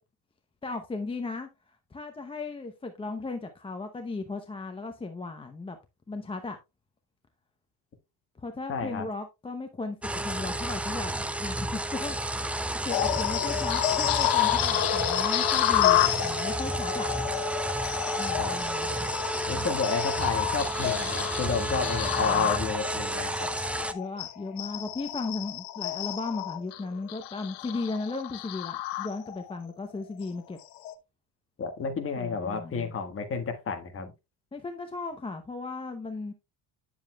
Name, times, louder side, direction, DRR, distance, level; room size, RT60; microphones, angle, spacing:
voice 1, 0.6-1.5 1.9-5.8 6.1-6.6 8.4-10.0 10.2-12.2 12.8-17.1 18.2-19.1 22.2-22.5 23.9-30.6 32.2-32.9 34.5-36.3, left 3 dB, 15° left, 0.7 m, -36 dB
voice 2, 8.7-9.1 18.4-18.6 19.5-23.5 31.6-34.1, left 4 dB, 30° left, 1.5 m, -31 dB
sound 1, 10.0-23.9, right 1 dB, 5° right, 0.3 m, -31 dB
sound 2, 12.9-29.6 30.0-30.2 30.8-30.9, left 13 dB, 75° left, 1.0 m, -30 dB
9.6 x 7.1 x 2.3 m
cardioid pair, 130°, 41 cm